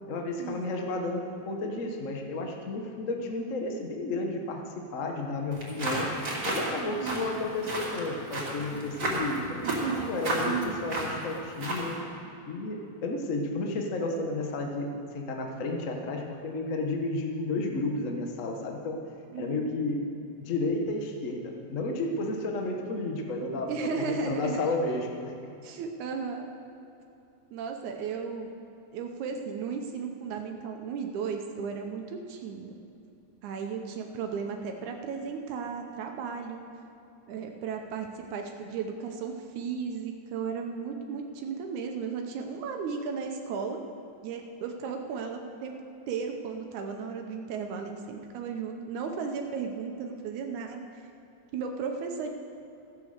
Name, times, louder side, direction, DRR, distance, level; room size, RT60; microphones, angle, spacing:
voice 1, 0.1-6.1 6.4-9.6 10.1-12.0 12.4-19.0 19.4-20.0 20.4-25.3, left 2 dB, 65° left, 2 dB, 0.7 m, -32 dB
sound 1, 5.5-12.0, right 1 dB, 30° right, 3.3 m, -33 dB
voice 2, 7.0-7.3 9.6-10.9 19.3-19.7 23.7-24.7 25.6-26.5 27.5-28.5 28.9-32.8 33.4-36.6 37.3-43.8 44.2-45.8 46.1-51.0 51.5-52.3, right 5 dB, 80° right, 3 dB, 2.3 m, -35 dB
14.5 x 8.3 x 6.6 m, 2.8 s
omnidirectional pair, 3.4 m